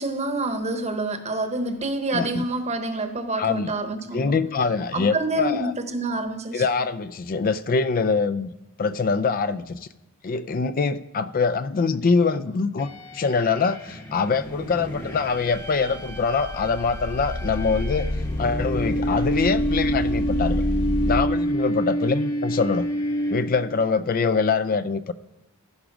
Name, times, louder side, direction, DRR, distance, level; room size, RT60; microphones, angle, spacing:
voice 1, 0.0-4.4 4.9-6.6, right 2 dB, 30° right, 8 dB, 1.0 m, -27 dB
voice 2, 2.1-2.4 3.4-3.7 4.1-5.7 6.5-8.5 8.8-9.8 10.2-18.1 18.4-20.6 21.1-22.9 23.3-25.1, left 4 dB, 40° left, 13 dB, 0.4 m, -24 dB
sound 1, 12.8-23.8, equal, 15° left, 0.9 m, -28 dB
sound 2, 14.5-21.2, left 1 dB, 80° left, 1.1 m, -29 dB
15.0 x 5.0 x 6.0 m, 0.94 s
head